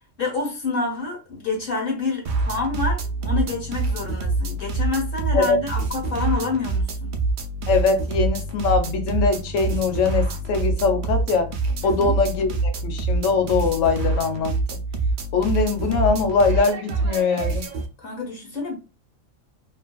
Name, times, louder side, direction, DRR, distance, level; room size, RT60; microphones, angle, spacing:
voice 1, 0.2-7.2 11.8-12.1 18.0-18.8, left 3 dB, 45° left, 1.2 m, -28 dB
sound 1, 2.3-17.9, right 3 dB, 65° right, 0.5 m, -26 dB
voice 2, 7.7-11.5 11.8-14.6 15.3-17.6, left 4 dB, 80° left, 1.0 m, -22 dB
2.8 x 2.5 x 2.2 m
omnidirectional pair, 1.3 m